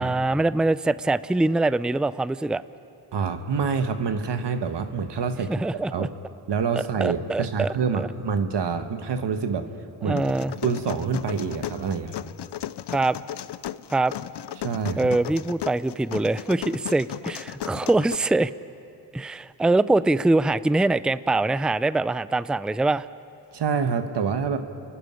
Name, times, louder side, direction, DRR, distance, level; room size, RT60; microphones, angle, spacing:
voice 1, 0.0-2.6 5.5-6.1 7.0-8.1 10.1-10.5 12.9-13.2 13.9-14.1 15.0-18.5 19.1-23.1, right 2 dB, ahead, 16 dB, 0.4 m, -23 dB
voice 2, 3.1-5.5 5.9-6.1 6.5-9.7 10.0-10.2 10.5-12.2 14.6-15.1 23.5-24.6, right 5 dB, 85° right, 8 dB, 1.3 m, -26 dB
sound 1, 10.2-18.2, left 11 dB, 80° left, 0.6 m, -35 dB
29.5 x 11.5 x 10.0 m, 2.5 s
cardioid pair, 55°, 41 cm